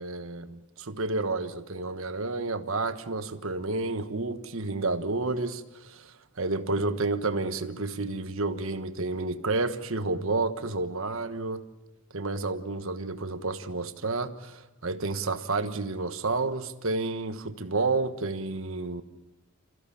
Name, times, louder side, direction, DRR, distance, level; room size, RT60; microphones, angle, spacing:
voice 1, 0.0-11.6 12.1-19.0, right 3 dB, 65° right, 1.3 m, -30 dB
26.5 x 15.5 x 8.6 m
head